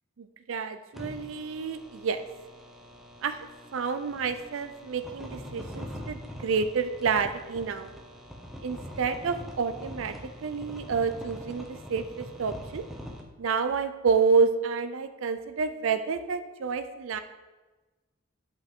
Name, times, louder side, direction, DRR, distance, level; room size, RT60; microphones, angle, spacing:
voice 1, 0.2-2.2 3.2-3.4 3.7-7.9 8.6-10.1 10.4-12.8 13.4-17.2, right 5 dB, 80° right, 10 dB, 0.5 m, -29 dB
sound 1, 0.9-13.2, equal, ahead, 0.8 m, -43 dB
8.0 x 5.8 x 3.6 m, 1.2 s
head